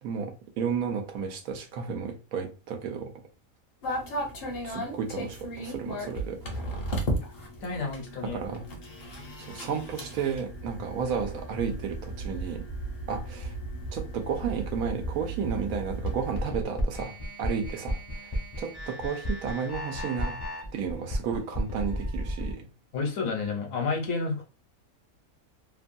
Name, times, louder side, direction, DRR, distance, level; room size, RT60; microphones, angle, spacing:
voice 1, 0.0-3.1 4.6-6.4 8.3-8.6 9.4-12.7 13.1-13.5 13.9-17.1 17.4-18.0 18.2-20.4 20.7-22.6, right 6 dB, 80° right, 1.1 m, -32 dB
sound 1, 3.8-16.5, right 1 dB, 50° left, 0.8 m, -35 dB
voice 2, 7.6-8.4 22.9-24.4, left 4 dB, 70° left, 1.2 m, -30 dB
sound 2, 16.3-22.5, equal, 25° left, 0.5 m, -33 dB
2.9 x 2.2 x 2.6 m
omnidirectional pair, 1.5 m